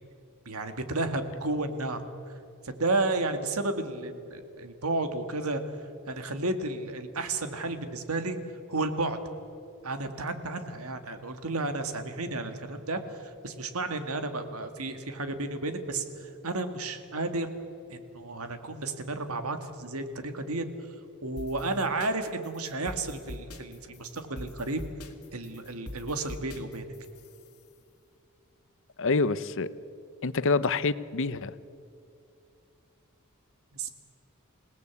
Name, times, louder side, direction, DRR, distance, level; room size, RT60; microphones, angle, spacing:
voice 1, 0.5-2.0 2.6-5.6 6.1-8.4 8.7-9.2 9.8-17.5 17.9-20.7 21.2-24.8 25.3-26.8 33.7-33.9, right 2 dB, 75° right, 8 dB, 2.1 m, -32 dB
sound 1, 21.4-27.7, left 1 dB, 80° left, 2.2 m, -44 dB
voice 2, 29.0-29.7 30.2-31.5, left 4 dB, 60° left, 16 dB, 0.8 m, -26 dB
27.5 x 18.0 x 8.4 m, 2.6 s
head